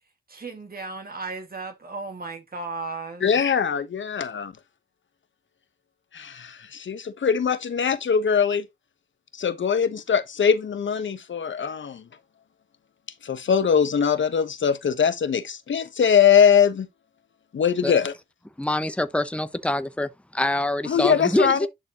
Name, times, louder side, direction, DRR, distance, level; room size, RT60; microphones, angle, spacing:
voice 1, 0.3-3.4, right 3 dB, 45° right, 2.1 m, -35 dB
voice 2, 3.2-4.5 6.1-8.6 9.3-12.0 13.2-16.9 17.5-18.1 20.9-21.7, left 7 dB, 65° left, 1.2 m, -22 dB
voice 3, 18.6-21.7, left 1 dB, 5° left, 0.9 m, -25 dB
11.0 x 4.1 x 3.0 m
cardioid pair, 50°, 21 cm